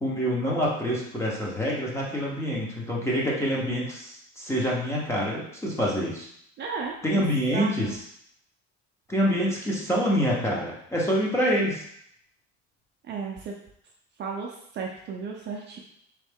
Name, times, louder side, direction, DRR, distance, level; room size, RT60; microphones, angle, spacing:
voice 1, 0.0-6.3 7.0-8.0 9.1-11.8, equal, 10° left, -4 dB, 0.7 m, -26 dB
voice 2, 6.6-8.0 13.0-13.5 14.2-15.8, right 5 dB, 35° right, -1 dB, 0.5 m, -34 dB
3.7 x 3.1 x 3.5 m, 0.69 s
cardioid pair, 170°, 30 cm